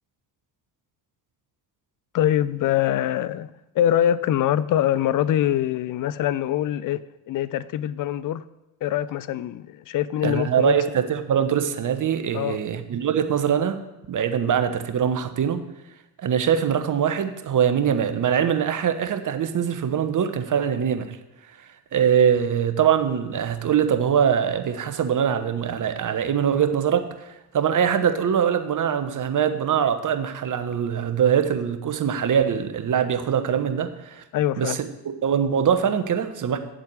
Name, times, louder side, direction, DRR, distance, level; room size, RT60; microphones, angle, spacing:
voice 1, 2.1-8.4 8.8-10.8 12.3-12.6 34.3-34.8, left 11 dB, 40° left, 0.6 m, -24 dB
voice 2, 10.2-13.8 14.1-15.6 16.2-21.2 21.9-27.3 27.5-34.2 34.6-36.6, right 8 dB, 40° right, 1.2 m, -23 dB
9.1 x 7.3 x 4.8 m
hypercardioid pair, 55°, 50 cm